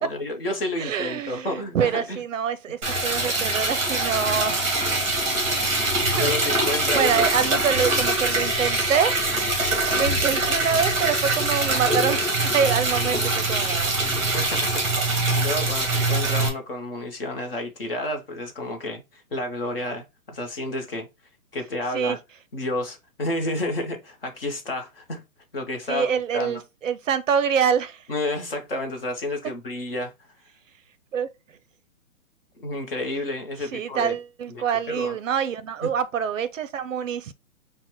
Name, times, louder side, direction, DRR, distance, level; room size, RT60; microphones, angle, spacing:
voice 1, 0.0-2.2 6.1-7.2 14.3-21.1 21.5-22.2 22.5-25.2 25.5-26.6 28.1-30.1 32.6-34.2 34.5-35.2 35.8-35.9, left 1 dB, 40° left, 0.7 m, -30 dB
voice 2, 0.8-4.7 6.2-9.2 9.9-12.2 12.4-13.9 21.9-22.2 25.9-28.1 31.1-31.3 33.6-37.3, right 7 dB, 65° right, 0.5 m, -26 dB
Liquid, 2.8-16.5, right 2 dB, 20° right, 1.0 m, -23 dB
5.6 x 2.1 x 2.8 m
hypercardioid pair, 180°, 43 cm